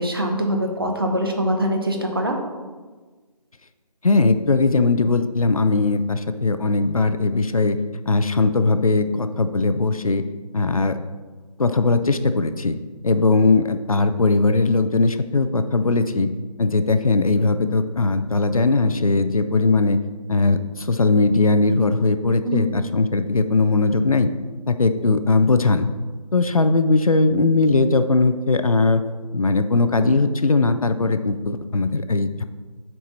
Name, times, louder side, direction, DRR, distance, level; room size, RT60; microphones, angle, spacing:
voice 1, 0.0-2.4 22.4-22.7, equal, 35° right, 3 dB, 0.8 m, -23 dB
voice 2, 4.0-7.8 8.1-10.2 10.5-11.0 11.6-12.8 13.0-16.3 16.6-20.0 20.3-24.3 24.7-25.9 26.3-29.0 29.3-32.4, left 3 dB, 60° left, 10 dB, 0.5 m, -19 dB
7.3 x 4.6 x 4.1 m, 1.3 s
figure-of-eight pair, 175°, 21 cm